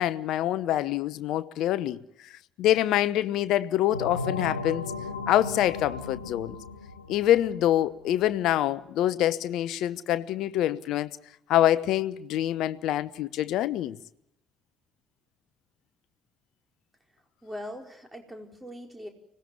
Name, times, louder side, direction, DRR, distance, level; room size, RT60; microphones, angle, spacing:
voice 1, 0.0-2.3 2.6-4.9 5.3-6.6 7.1-11.2 11.5-14.0, left 12 dB, 60° left, 0.9 m, -25 dB
sound 1, 3.9-8.3, left 3 dB, 85° left, 0.9 m, -36 dB
voice 2, 17.4-19.1, equal, 10° right, 4.8 m, -41 dB
25.0 x 19.0 x 9.5 m
figure-of-eight pair, 50°, 0 cm